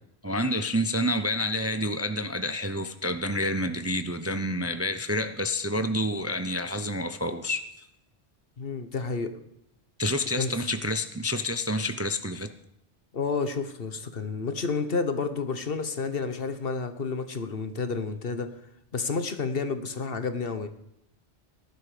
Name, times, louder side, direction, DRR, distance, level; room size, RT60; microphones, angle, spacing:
voice 1, 0.2-7.9 10.0-12.5, left 1 dB, 15° right, 9 dB, 0.5 m, -28 dB
voice 2, 8.6-9.4 10.3-10.7 13.1-18.5 18.9-20.7, left 4 dB, 60° left, 10 dB, 1.4 m, -30 dB
18.0 x 11.0 x 5.0 m, 0.78 s
omnidirectional pair, 1.1 m